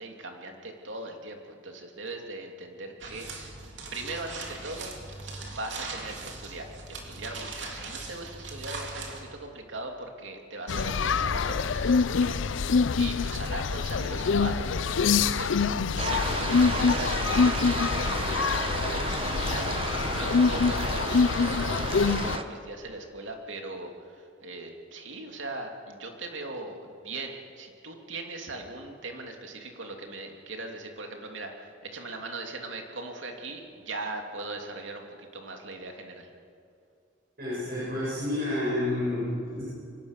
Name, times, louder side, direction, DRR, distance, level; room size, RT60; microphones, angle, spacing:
voice 1, 0.0-3.6 3.9-4.9 5.4-36.3, right 2 dB, 85° right, 3 dB, 2.8 m, -40 dB
sound 1, 3.0-9.2, right 3 dB, 70° right, 3.2 m, -40 dB
sound 2, 10.7-22.4, left 5 dB, 85° left, 0.6 m, -25 dB
sound 3, 16.0-22.4, right 3 dB, 30° right, 1.2 m, -33 dB
voice 2, 37.4-39.6, left 1 dB, 50° right, -9 dB, 7.5 m, -29 dB
24.0 x 18.0 x 6.8 m, 2.4 s
head